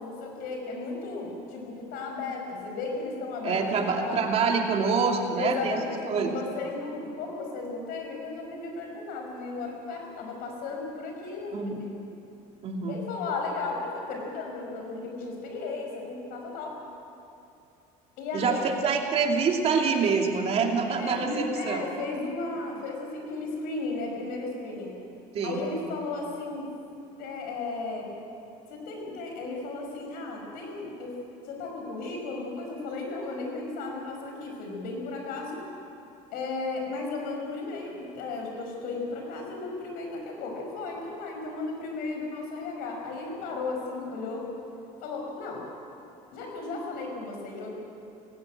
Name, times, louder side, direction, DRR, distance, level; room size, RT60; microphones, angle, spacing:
voice 1, 0.0-4.2 5.4-11.9 12.9-16.7 18.2-18.7 20.9-25.0 25.4-26.7 27.2-28.1 28.7-31.2 31.4-35.6 36.3-44.5 45.0-45.6 46.3-47.7, left 3 dB, 65° left, 1 dB, 5.6 m, -35 dB
voice 2, 3.4-5.8 6.0-6.3 11.5-11.8 12.6-13.0 18.3-21.8 25.3-25.6, right 5 dB, 40° right, 2 dB, 2.7 m, -26 dB
19.0 x 16.5 x 8.8 m, 2.7 s
cardioid pair, 135°, 16 cm